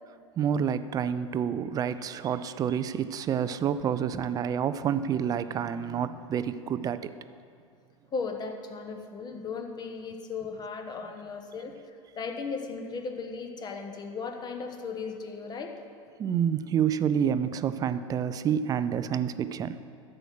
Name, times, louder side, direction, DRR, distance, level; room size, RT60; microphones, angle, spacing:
voice 1, 0.4-7.1 16.2-19.8, right 8 dB, 20° right, 13 dB, 0.4 m, -28 dB
voice 2, 8.1-11.7 12.2-15.7, left 4 dB, 25° left, 4 dB, 1.1 m, -36 dB
11.0 x 7.8 x 6.1 m, 2.3 s
figure-of-eight pair, 85°, 17 cm